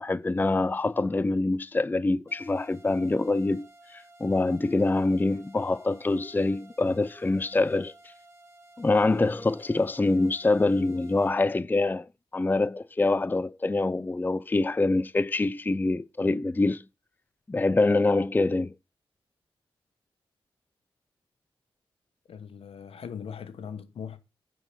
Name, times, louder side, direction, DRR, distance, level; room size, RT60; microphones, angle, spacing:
voice 1, 0.0-8.1 8.8-16.8 17.5-18.7, left 2 dB, 20° left, 0.5 m, -25 dB
sound 1, 2.3-11.3, right 1 dB, 25° right, 3.2 m, -54 dB
voice 2, 22.3-24.2, left 7 dB, 75° left, 1.2 m, -40 dB
9.8 x 4.6 x 6.9 m
cardioid pair, 60°, 10 cm